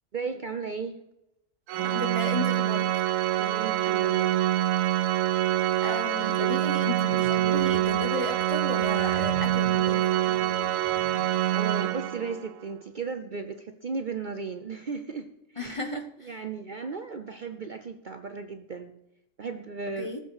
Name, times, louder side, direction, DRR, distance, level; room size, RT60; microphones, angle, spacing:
voice 1, 0.1-1.0 3.4-4.4 11.2-15.9 16.2-18.9 19.4-20.1, right 5 dB, 45° right, 7 dB, 0.7 m, -35 dB
Organ, 1.7-12.5, right 13 dB, 85° right, 1.0 m, -25 dB
voice 2, 1.8-3.0 5.8-10.0 15.6-16.3 20.0-20.2, left 1 dB, 25° left, 5 dB, 1.2 m, -34 dB
sound 1, 6.8-11.4, right 1 dB, 25° right, 5.1 m, -44 dB
19.0 x 6.9 x 4.8 m, 0.87 s
omnidirectional pair, 1.3 m